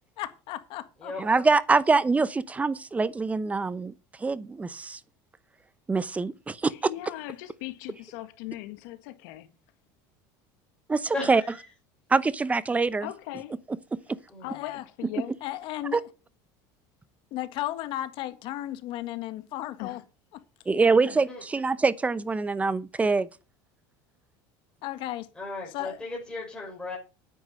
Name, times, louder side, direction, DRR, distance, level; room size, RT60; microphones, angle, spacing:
voice 1, 0.2-1.1 14.5-14.8 15.4-16.0 17.3-20.0 24.8-25.3 25.7-26.0, left 14 dB, 60° left, 1.7 m, -34 dB
voice 2, 1.2-3.9 4.2-5.0 5.9-6.7 10.9-11.4 12.1-13.1 14.1-14.2 15.9-16.0 20.7-23.3, right 4 dB, 15° right, 0.7 m, -24 dB
voice 3, 6.7-9.5 13.0-13.6 14.4-15.3 19.8-20.0, left 16 dB, 80° left, 2.0 m, -39 dB
voice 4, 11.1-11.7 14.3-14.5 21.3-21.4 25.4-27.0, left 3 dB, 10° left, 5.4 m, -36 dB
9.3 x 9.3 x 5.4 m
supercardioid pair, 125°, 10 cm